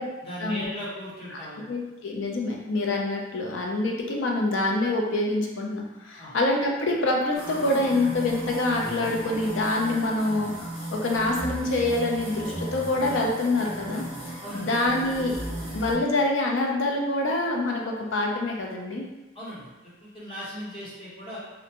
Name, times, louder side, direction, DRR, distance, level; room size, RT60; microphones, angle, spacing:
voice 1, 0.2-1.6 6.2-6.4 10.9-11.0 14.4-14.7 19.3-21.4, equal, 30° left, -8 dB, 0.9 m, -38 dB
voice 2, 1.7-14.0 14.5-15.4 15.7-19.1, left 2 dB, 70° left, 0 dB, 0.5 m, -26 dB
sound 1, 7.3-15.9, right 1 dB, ahead, 0.8 m, -36 dB
2.5 x 2.1 x 2.8 m, 1.1 s
head